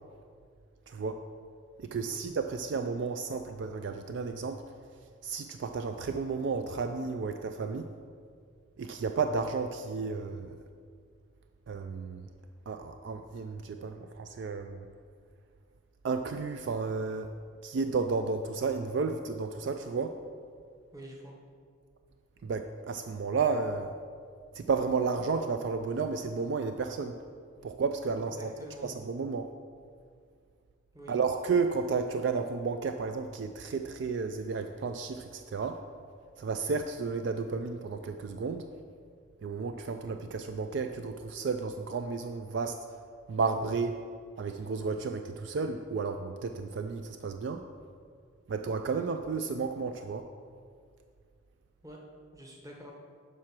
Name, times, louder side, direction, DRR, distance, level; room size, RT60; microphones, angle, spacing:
voice 1, 0.9-1.2 1.8-4.6 5.2-7.9 8.8-10.6 11.7-12.2 12.7-14.9 16.0-17.3 17.6-20.2 22.4-23.9 24.6-27.2 27.6-28.5 28.8-29.5 31.1-35.8 36.4-38.6 39.4-42.8 43.3-43.9 44.4-47.6 48.5-50.2, right 4 dB, 60° right, 7 dB, 0.3 m, -32 dB
voice 2, 20.9-21.3 28.1-28.9 30.9-31.1 51.8-52.0 52.3-52.9, equal, 15° right, -1 dB, 1.0 m, -47 dB
7.5 x 4.7 x 6.0 m, 2.1 s
head